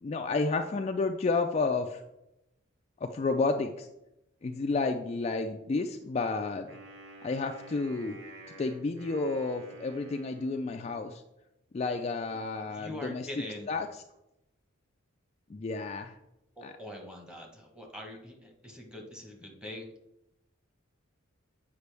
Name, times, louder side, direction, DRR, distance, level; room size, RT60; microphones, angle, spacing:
voice 1, 0.0-2.0 3.0-3.9 4.4-6.8 7.2-8.2 8.6-11.2 11.7-13.3 13.7-13.9 15.5-16.2 16.6-16.7, left 3 dB, 30° left, 5 dB, 0.3 m, -31 dB
Wind instrument woodwind instrument, 6.7-11.1, right 2 dB, 75° right, 1.7 m, -50 dB
voice 2, 11.8-13.7 16.6-19.9, left 1 dB, 5° right, 1 dB, 1.1 m, -44 dB
8.1 x 5.1 x 3.4 m, 0.89 s
head